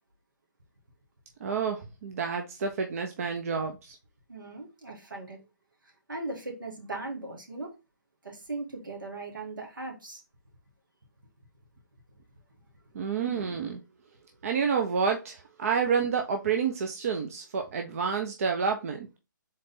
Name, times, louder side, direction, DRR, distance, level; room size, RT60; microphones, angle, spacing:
voice 1, 1.4-4.0 12.9-13.8 14.4-19.1, right 6 dB, 45° right, 0.6 m, -29 dB
voice 2, 4.3-5.4 6.1-7.7 8.2-10.2, right 2 dB, 80° right, 1.8 m, -38 dB
3.9 x 3.3 x 3.9 m
figure-of-eight pair, 140°, 11 cm